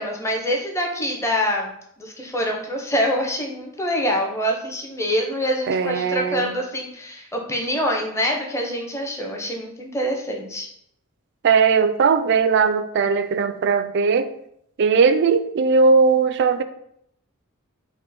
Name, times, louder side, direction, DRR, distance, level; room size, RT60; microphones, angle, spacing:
voice 1, 0.0-10.7, equal, 15° left, 1 dB, 0.7 m, -25 dB
voice 2, 5.7-6.5 11.4-14.3 14.8-16.6, right 5 dB, 55° right, 11 dB, 0.3 m, -18 dB
5.2 x 2.1 x 4.1 m, 0.72 s
head